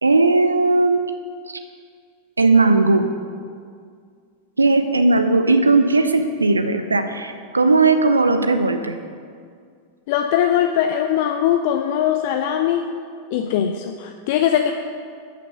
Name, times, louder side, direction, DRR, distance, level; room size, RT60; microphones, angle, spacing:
voice 1, 0.0-1.0 1.5-1.6 2.4-3.1 4.6-9.0, right 3 dB, 80° right, 8 dB, 0.7 m, -17 dB
voice 2, 10.1-12.8 13.3-14.7, left 10 dB, 50° left, 6 dB, 0.5 m, -20 dB
13.0 x 6.1 x 6.5 m, 2.1 s
figure-of-eight pair, 90°, 0 cm